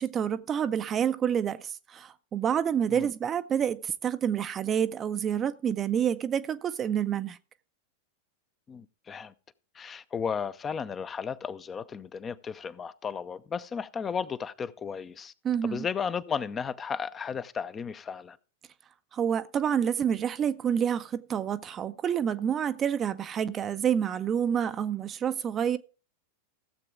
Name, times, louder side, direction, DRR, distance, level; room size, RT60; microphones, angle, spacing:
voice 1, 0.0-7.4 15.4-15.9 19.1-25.8, right 8 dB, 25° right, 0.6 m, -28 dB
voice 2, 8.7-9.3 9.7-15.3 15.6-18.4, left 6 dB, 20° left, 0.6 m, -34 dB
15.5 x 7.7 x 3.7 m
figure-of-eight pair, 90°, 0 cm